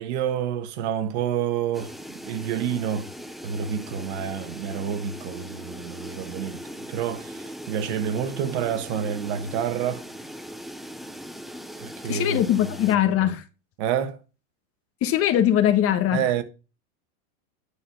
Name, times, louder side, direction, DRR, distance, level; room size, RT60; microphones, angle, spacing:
voice 1, 0.0-1.9 2.2-3.1 3.4-10.0 11.8-12.4 13.8-14.2 16.1-16.4, right 9 dB, 60° right, 1.5 m, -28 dB
sound 1, 1.7-13.0, equal, ahead, 0.4 m, -39 dB
voice 2, 12.1-13.4 15.0-16.2, left 11 dB, 35° left, 1.4 m, -21 dB
10.0 x 4.8 x 5.9 m
supercardioid pair, 135°, 38 cm